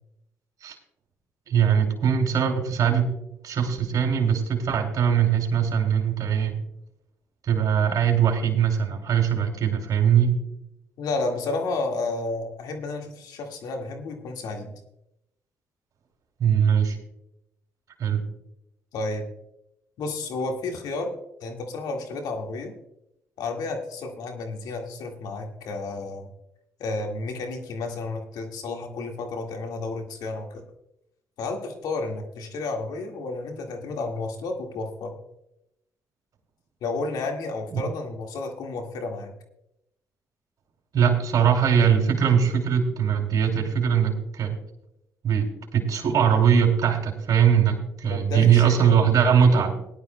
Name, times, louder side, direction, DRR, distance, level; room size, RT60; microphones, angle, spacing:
voice 1, 1.5-3.1 3.4-6.5 7.4-10.4 16.4-17.0 18.0-18.2 37.7-37.8 40.9-44.6 45.2-49.7, right 7 dB, 60° right, 2 dB, 2.9 m, -21 dB
voice 2, 11.0-14.7 18.9-19.3 20.0-21.1 21.4-22.8 23.4-26.3 26.8-30.6 31.4-35.2 36.8-39.3 48.0-49.0, left 3 dB, 75° left, 3 dB, 1.8 m, -31 dB
18.5 x 11.0 x 2.2 m, 0.85 s
supercardioid pair, 60°, 7 cm